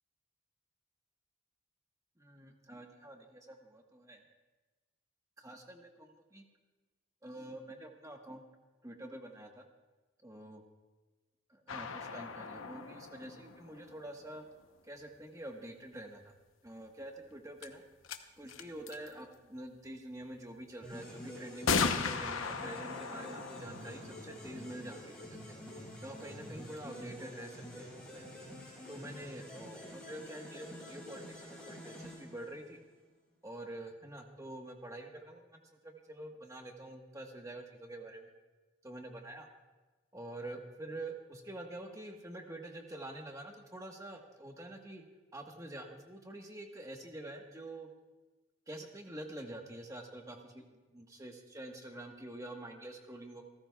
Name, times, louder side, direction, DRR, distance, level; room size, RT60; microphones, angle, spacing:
voice 1, 2.2-4.2 5.4-6.4 7.2-8.4 8.8-9.6 10.2-10.6 11.5-14.4 14.9-16.2 16.6-17.8 18.4-25.3 26.0-28.2 28.9-32.8 33.4-38.3 38.8-39.5 40.1-45.0 45.3-47.9 48.7-50.6 50.9-53.4, right 1 dB, 15° right, 2 dB, 1.2 m, -47 dB
sound 1, 11.7-14.4 17.0-17.1 17.6-17.7 18.0-18.2 18.5-19.1 20.3-20.4 21.7-25.2, left 5 dB, 80° left, 0.8 m, -37 dB
sound 2, 20.8-32.9, equal, 5° left, 5.6 m, -48 dB
29.0 x 14.0 x 2.3 m, 1.2 s
head